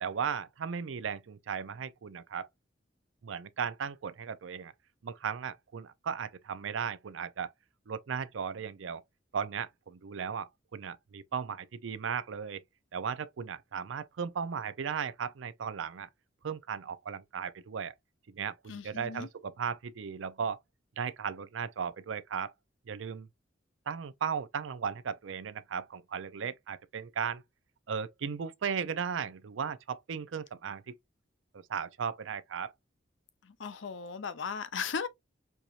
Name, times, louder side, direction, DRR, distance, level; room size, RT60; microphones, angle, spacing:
voice 1, 0.0-2.5 3.2-4.7 5.0-7.5 7.9-9.0 9.3-12.6 12.9-16.1 16.4-17.9 18.3-20.6 21.0-22.5 22.9-23.3 23.9-27.4 27.9-30.9 31.5-32.7, right 6 dB, 85° right, 0.5 m, -36 dB
voice 2, 18.7-19.3 33.4-35.1, left 6 dB, 75° left, 0.6 m, -37 dB
4.6 x 2.8 x 2.4 m
head